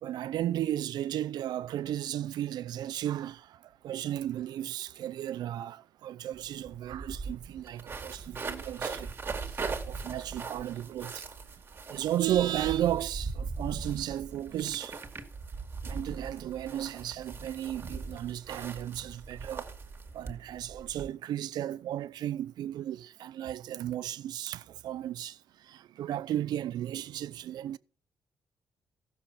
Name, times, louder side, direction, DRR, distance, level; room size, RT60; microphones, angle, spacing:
voice 1, 0.0-9.1 9.4-11.3 11.7-15.0 15.8-19.7 20.1-27.8, right 12 dB, 85° right, 0.6 m, -34 dB
sound 1, 6.3-6.4 6.6-21.1, right 4 dB, 35° right, 1.9 m, -40 dB
15.0 x 6.7 x 5.7 m
cardioid pair, 135°, 7 cm